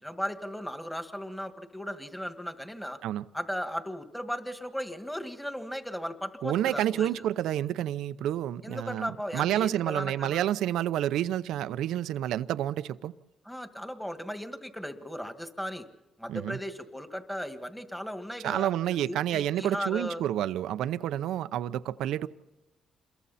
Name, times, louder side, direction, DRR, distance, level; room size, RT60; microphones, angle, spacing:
voice 1, 0.0-3.0 3.3-7.1 8.6-10.4 13.5-15.8 16.2-20.2, equal, 5° left, 2.0 m, -36 dB
voice 2, 6.4-13.1 16.3-16.6 18.4-22.3, right 12 dB, 85° right, 0.7 m, -29 dB
28.0 x 22.5 x 4.3 m
cardioid pair, 90°, 0 cm